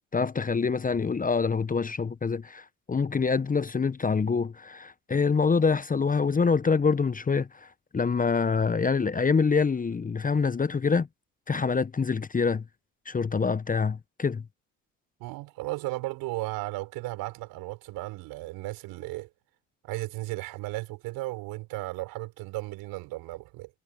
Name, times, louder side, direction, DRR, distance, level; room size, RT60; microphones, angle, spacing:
voice 1, 0.1-11.1 11.5-12.6 13.1-14.4, left 5 dB, 20° left, 1.0 m, -26 dB
voice 2, 15.2-19.3 19.8-23.7, right 21 dB, 70° right, 6.4 m, -35 dB
hypercardioid pair, 55°, 37 cm